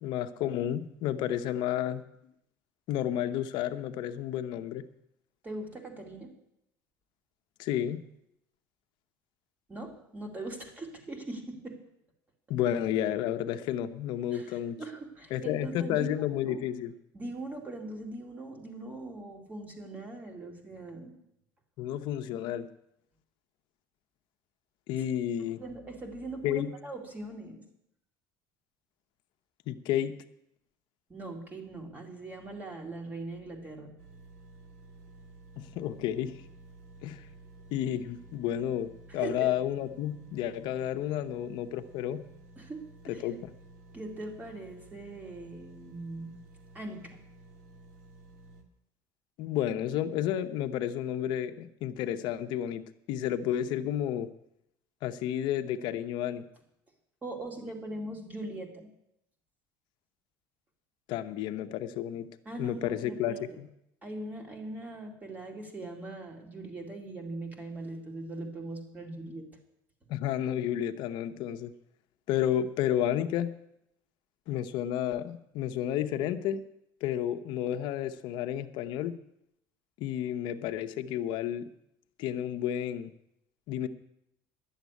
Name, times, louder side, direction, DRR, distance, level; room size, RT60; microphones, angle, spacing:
voice 1, 0.0-2.0 2.9-4.8 7.6-8.0 12.5-14.8 15.3-16.9 21.8-22.7 24.9-25.6 26.4-26.7 29.7-30.1 35.6-36.4 37.0-37.2 37.7-42.2 43.1-43.5 49.4-54.3 55.0-56.5 61.1-62.3 62.6-63.7 70.1-71.7 72.3-73.5 74.5-76.6 77.0-79.2 80.0-81.7 82.2-83.1 83.7-83.9, left 11 dB, 65° left, 9 dB, 0.8 m, -31 dB
voice 2, 5.4-6.3 9.7-11.8 14.3-16.6 17.1-21.2 24.9-25.0 25.4-27.6 31.1-34.0 39.1-39.5 42.6-43.3 43.9-46.4 46.7-47.2 57.2-58.9 62.4-63.4 64.0-69.5, right 2 dB, 20° right, 2 dB, 2.5 m, -41 dB
sound 1, 34.0-48.6, right 2 dB, 85° right, 1.6 m, -53 dB
11.5 x 7.2 x 9.4 m, 0.79 s
cardioid pair, 140°, 9 cm